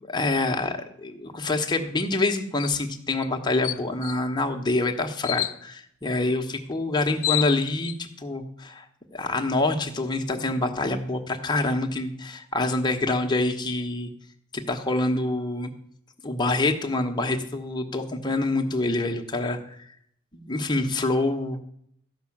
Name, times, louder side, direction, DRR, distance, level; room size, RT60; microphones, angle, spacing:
voice 1, 0.1-8.9 9.1-14.1 14.5-15.7 16.2-19.8 20.3-21.6, left 2 dB, 20° left, 3 dB, 1.1 m, -26 dB
sound 1, 2.6-2.8 3.2-3.3 3.6-4.2 5.2-5.6 6.7-6.8 7.0-8.0, left 15 dB, 80° left, 0.5 m, -29 dB
13.0 x 5.7 x 7.2 m, 0.69 s
head